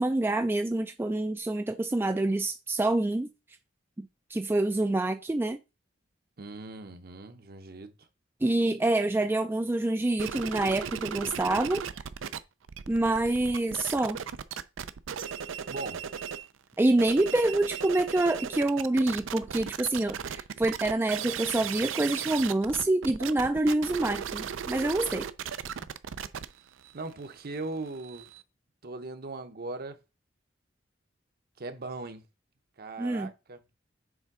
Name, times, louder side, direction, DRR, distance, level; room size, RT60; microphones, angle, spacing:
voice 1, 0.0-3.3 4.0-5.6 8.4-11.9 12.9-14.2 16.8-25.3 33.0-33.3, right 2 dB, 10° right, 0.3 m, -27 dB
voice 2, 6.4-8.1 15.7-16.0 26.9-28.3 28.8-30.0 31.6-32.2 32.8-33.6, right 3 dB, 55° right, 0.8 m, -39 dB
sound 1, 10.2-12.4 12.6-16.5 16.9-28.4, right 8 dB, 85° right, 0.5 m, -37 dB
7.2 x 3.4 x 4.7 m
head